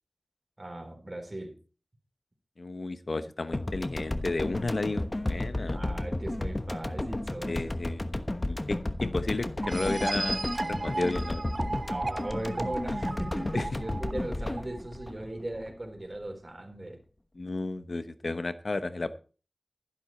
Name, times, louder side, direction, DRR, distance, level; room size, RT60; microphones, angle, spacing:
voice 1, 0.6-1.5 5.7-7.8 11.9-17.0 19.0-19.1, right 1 dB, 40° right, 3 dB, 3.9 m, -38 dB
voice 2, 2.6-5.8 7.5-8.1 8.5-10.4 10.7-11.5 13.5-13.7 17.3-19.1, left 2 dB, 70° left, 12 dB, 0.9 m, -32 dB
sound 1, 3.5-16.0, left 1 dB, 35° left, 1.1 m, -33 dB
sound 2, 9.6-15.1, right 2 dB, 55° right, 0.4 m, -35 dB
11.5 x 11.0 x 4.3 m, 0.37 s
wide cardioid pair, 60°, 0 cm